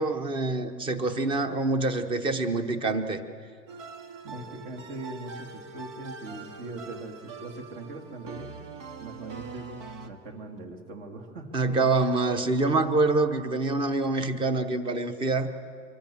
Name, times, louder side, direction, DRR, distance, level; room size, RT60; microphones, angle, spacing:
voice 1, 0.0-3.2 11.5-15.5, right 3 dB, 15° right, 10 dB, 0.9 m, -26 dB
sound 1, 3.7-10.1, right 4 dB, 75° right, 2.3 m, -43 dB
voice 2, 4.2-8.6 9.0-9.7 10.0-11.5, right 2 dB, 50° right, 4 dB, 2.8 m, -41 dB
24.5 x 24.5 x 7.2 m, 2.1 s
supercardioid pair, 170°, 37 cm